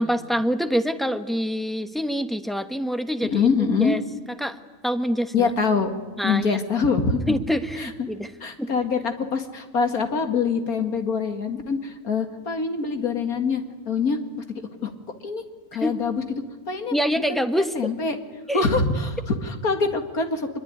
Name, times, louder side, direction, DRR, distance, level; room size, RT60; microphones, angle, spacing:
voice 1, 0.0-4.0 4.4-4.6 4.8-5.5 6.2-6.6 7.3-8.3 8.6-8.7 15.8-15.9 16.9-17.9 18.5-18.6, equal, ahead, 9 dB, 1.0 m, -25 dB
voice 2, 3.2-4.0 5.3-5.9 6.2-7.4 7.8-7.9 8.4-14.2 14.8-14.9 15.2-15.4 15.7-16.2 16.7-17.0 17.3-17.4 17.8-18.2 18.5-20.5, left 5 dB, 70° left, 6 dB, 2.5 m, -24 dB
25.0 x 22.0 x 9.7 m, 1.4 s
omnidirectional pair, 1.6 m